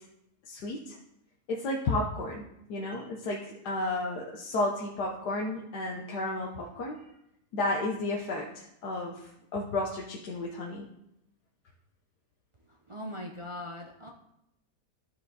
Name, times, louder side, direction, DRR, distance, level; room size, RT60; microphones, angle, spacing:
voice 1, 0.5-1.0 1.5-7.0 7.5-10.9, left 2 dB, 80° left, -1 dB, 1.5 m, -32 dB
voice 2, 12.9-14.1, left 1 dB, 55° right, 0 dB, 0.3 m, -40 dB
12.5 x 4.8 x 4.0 m, 0.81 s
omnidirectional pair, 1.7 m